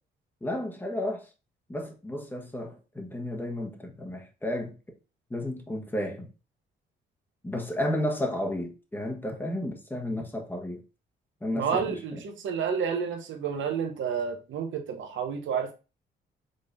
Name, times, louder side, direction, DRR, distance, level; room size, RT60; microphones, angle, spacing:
voice 1, 0.4-1.3 1.7-4.8 5.3-6.3 7.4-10.8 11.4-11.8 12.1-12.2, left 1 dB, 10° left, 1.1 m, -32 dB
voice 2, 11.5-15.8, right 6 dB, 75° right, 1.1 m, -30 dB
5.2 x 3.7 x 2.6 m
cardioid pair, 90°, 20 cm